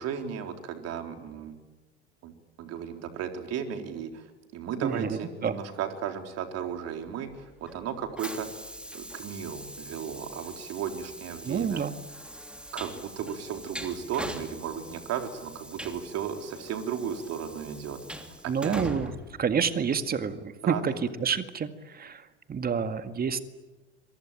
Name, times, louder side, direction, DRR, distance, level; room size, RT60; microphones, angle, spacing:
voice 1, 0.0-1.5 2.2-2.3 2.6-4.3 4.5-8.5 8.9-11.8 12.7-18.3 18.6-18.8 19.9-20.0 20.6-21.0, right 8 dB, 45° right, 5 dB, 4.0 m, -35 dB
voice 2, 4.8-5.5 11.4-11.9 18.5-19.1 19.4-20.9 21.2-23.4, right 6 dB, 25° right, 10 dB, 2.0 m, -28 dB
Train, 7.0-20.2, right 1 dB, 5° right, 2.9 m, -43 dB
27.0 x 24.0 x 9.0 m, 1.1 s
figure-of-eight pair, 80°, 35 cm